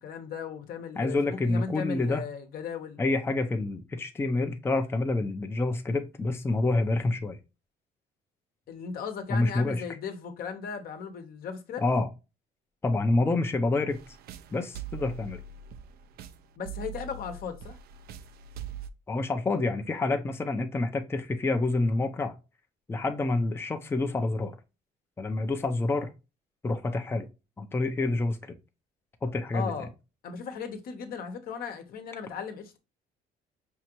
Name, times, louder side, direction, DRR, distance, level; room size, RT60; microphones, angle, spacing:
voice 1, 0.0-3.0 8.7-11.8 16.6-17.8 29.5-29.9 30.2-32.8, left 6 dB, 65° left, 0.9 m, -37 dB
voice 2, 1.0-2.2 3.0-7.4 9.3-9.8 11.8-12.1 12.8-14.0 14.5-15.4 19.1-22.3 22.9-24.6 25.2-26.1 26.6-27.3 27.6-28.6 29.2-29.7, left 2 dB, 15° left, 0.5 m, -27 dB
sound 1, 13.9-18.9, right 7 dB, 65° right, 0.5 m, -42 dB
5.5 x 2.5 x 2.9 m
cardioid pair, 110°, 17 cm